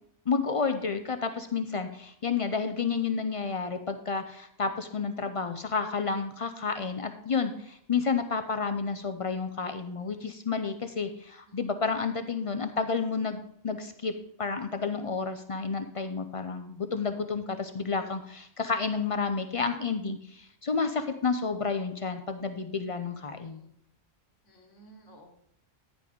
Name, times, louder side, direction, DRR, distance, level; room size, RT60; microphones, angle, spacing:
voice 1, 0.3-14.1 14.4-23.6, left 5 dB, 50° left, 8 dB, 0.4 m, -30 dB
voice 2, 23.4-23.7 24.4-25.3, right 2 dB, 80° left, 1 dB, 2.0 m, -56 dB
9.9 x 5.2 x 5.1 m, 0.70 s
omnidirectional pair, 1.2 m